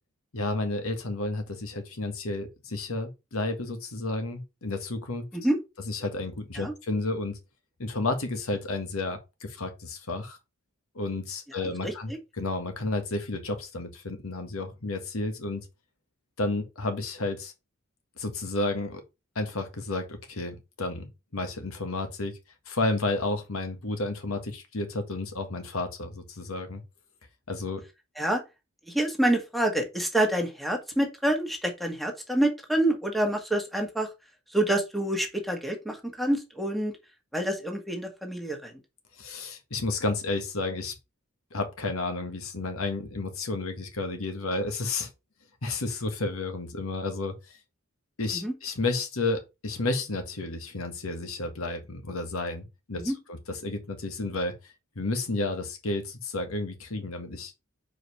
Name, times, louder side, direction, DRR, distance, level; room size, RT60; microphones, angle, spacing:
voice 1, 0.3-5.2 5.9-7.4 7.8-10.4 10.9-15.6 16.4-17.5 18.2-19.0 19.3-22.3 22.7-26.8 27.5-27.8 39.2-40.9 41.5-45.1 45.6-47.3 48.2-54.5 54.9-57.5, left 2 dB, 80° left, 1.6 m, -31 dB
voice 2, 11.5-12.2 28.2-28.4 28.9-34.1 34.5-36.9 37.3-38.7 48.3-48.5 53.0-53.2, right 1 dB, ahead, 1.5 m, -27 dB
4.9 x 4.6 x 5.4 m
head